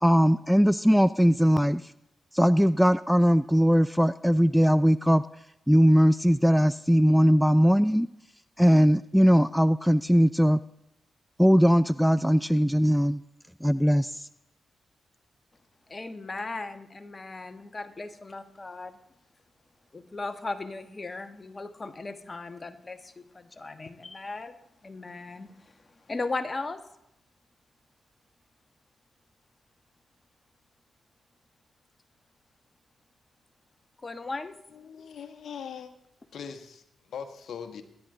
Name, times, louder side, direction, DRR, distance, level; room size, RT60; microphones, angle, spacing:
voice 1, 0.0-1.8 2.3-5.2 5.7-8.1 8.6-10.6 11.4-13.2 13.6-14.1, equal, ahead, 16 dB, 0.4 m, -20 dB
voice 2, 15.9-18.9 19.9-24.5 24.8-25.5 26.1-26.8 34.0-34.5, left 3 dB, 35° left, 9 dB, 1.4 m, -37 dB
voice 3, 34.7-35.9 36.3-37.8, left 7 dB, 70° left, 8 dB, 1.3 m, -41 dB
21.5 x 10.5 x 3.8 m, 0.81 s
supercardioid pair, 40°, 0 cm